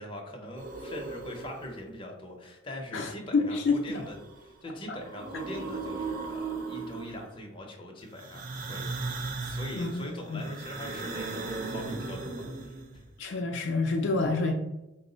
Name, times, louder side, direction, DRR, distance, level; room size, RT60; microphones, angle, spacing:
voice 1, 0.0-13.1, left 1 dB, 25° left, 0 dB, 0.7 m, -42 dB
sound 1, 0.6-1.8 3.6-4.5 4.8-7.4 8.1-13.0, right 3 dB, 40° right, 0.4 m, -37 dB
voice 2, 2.9-4.1 4.9-5.0 9.7-10.0 10.3-10.4 13.2-14.5, left 3 dB, 60° left, 2 dB, 0.4 m, -28 dB
4.4 x 2.0 x 3.8 m, 0.94 s
head